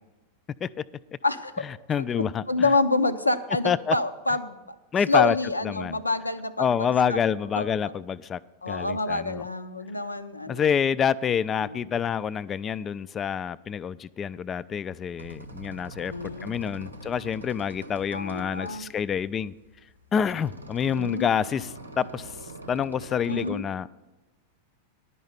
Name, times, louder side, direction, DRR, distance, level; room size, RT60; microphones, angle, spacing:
voice 1, 1.2-1.6 2.0-2.1 2.5-4.8 5.1-7.2 7.6-7.9 8.6-10.7 11.6-11.8 16.1-16.5 18.1-18.9 20.8-21.3 23.3-23.6, left 3 dB, 85° left, 12 dB, 0.5 m, -27 dB
voice 2, 1.9-2.4 3.6-4.0 4.9-5.3 5.6-6.0 6.6-8.4 8.7-9.4 10.5-16.1 16.4-19.5 20.1-22.4 22.7-23.9, left 7 dB, 25° left, 18 dB, 0.3 m, -27 dB
sound 1, 14.9-23.6, right 1 dB, 85° right, 0.8 m, -44 dB
11.0 x 5.6 x 8.5 m, 1.1 s
figure-of-eight pair, 90°, 0 cm